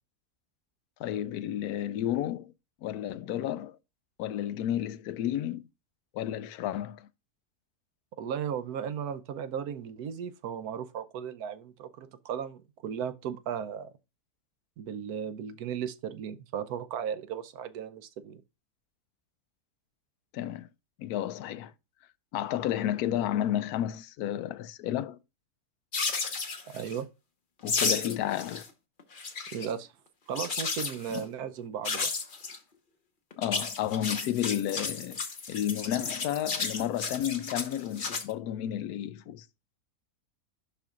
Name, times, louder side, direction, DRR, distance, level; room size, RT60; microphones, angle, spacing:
voice 1, 1.0-2.5 2.8-3.8 4.2-5.6 6.1-7.1 20.3-20.7 21.0-21.7 22.3-25.2 27.6-28.7 31.1-31.2 33.4-35.2 35.5-39.5, left 11 dB, 90° left, 1.1 m, -32 dB
voice 2, 8.2-13.9 14.8-18.4 26.7-27.1 29.5-29.9 30.3-32.1, right 8 dB, 90° right, 1.2 m, -36 dB
sound 1, 25.9-27.0 27.7-28.7 29.0-29.7 30.4-31.2 31.8-32.6 33.3-38.2, left 4 dB, 40° left, 1.0 m, -33 dB
11.5 x 4.4 x 2.4 m
omnidirectional pair, 1.6 m